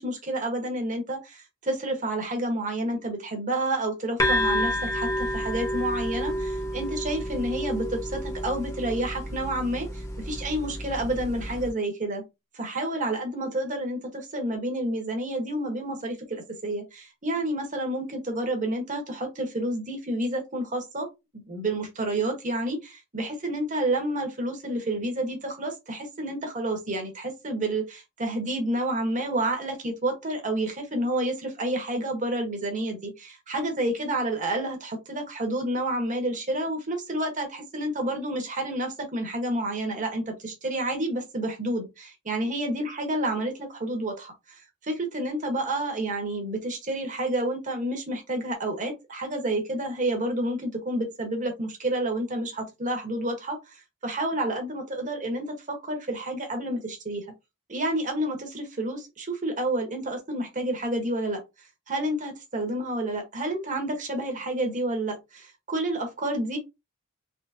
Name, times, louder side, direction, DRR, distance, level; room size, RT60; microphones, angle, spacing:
voice 1, 0.0-12.2 12.5-21.1 21.3-57.2 57.7-61.4 61.9-66.6, right 1 dB, 35° right, 1.3 m, -29 dB
sound 1, 4.2-11.7, equal, 15° left, 1.1 m, -30 dB
3.8 x 3.2 x 2.7 m
head